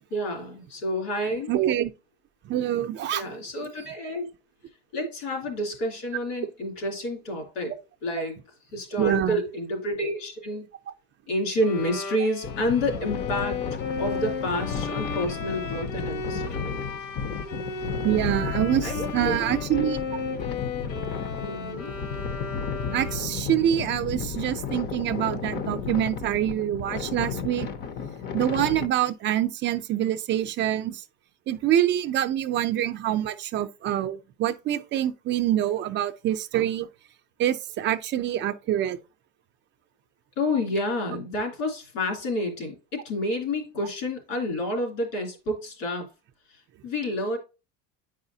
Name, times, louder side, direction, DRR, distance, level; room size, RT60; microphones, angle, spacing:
voice 1, 0.1-1.5 3.1-4.3 4.9-7.8 8.0-8.4 8.7-10.6 11.3-13.6 14.0-16.8 18.8-19.4 21.4-22.0 40.4-46.1 46.8-47.4, left 1 dB, 80° left, 2.9 m, -29 dB
voice 2, 1.5-1.9 2.5-3.3 9.0-9.4 18.0-20.0 22.9-27.7 28.3-31.0 31.5-36.9 37.4-39.0, right 11 dB, 40° right, 0.5 m, -25 dB
Bowed string instrument, 11.6-23.5, left 4 dB, 50° left, 0.9 m, -35 dB
sound 1, 12.4-28.9, left 6 dB, 35° left, 0.6 m, -33 dB
8.7 x 4.9 x 2.7 m
cardioid pair, 140°, 30 cm